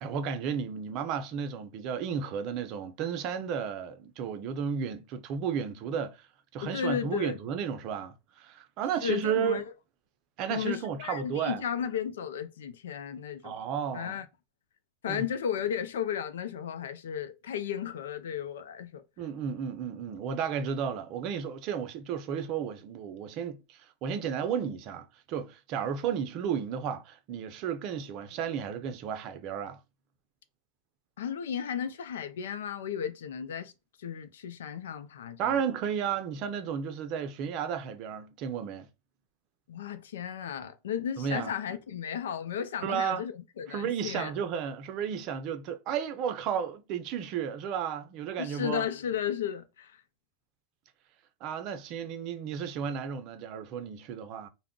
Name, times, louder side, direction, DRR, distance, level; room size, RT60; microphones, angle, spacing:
voice 1, 0.0-6.2 6.5-9.6 10.4-11.6 13.4-14.2 15.1-15.3 19.2-29.8 35.4-38.9 41.2-41.5 42.8-43.2 43.7-48.9 51.4-54.5, right 7 dB, 55° right, 0.5 m, -33 dB
voice 2, 6.6-7.4 9.0-9.6 10.5-13.6 13.9-14.3 15.0-19.0 31.2-33.7 34.0-35.6 39.7-44.3 48.4-50.0, left 8 dB, 80° left, 0.4 m, -34 dB
2.2 x 2.0 x 3.6 m
hypercardioid pair, 95°, 0 cm